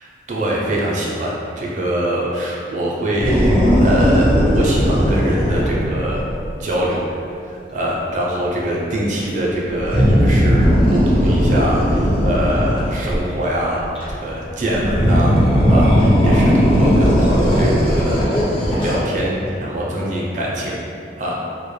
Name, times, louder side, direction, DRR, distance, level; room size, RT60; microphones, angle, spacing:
voice 1, 0.0-6.3 6.6-7.0 7.5-13.9 14.2-15.4 15.7-18.2 18.8-20.8 21.2-21.4, right 1 dB, 45° right, -4 dB, 0.4 m, -23 dB
sound 1, 3.2-6.6 9.7-13.3 13.8-14.3 14.7-19.2 19.5-19.6, equal, 30° left, 0.6 m, -16 dB
2.1 x 2.1 x 3.1 m, 2.5 s
head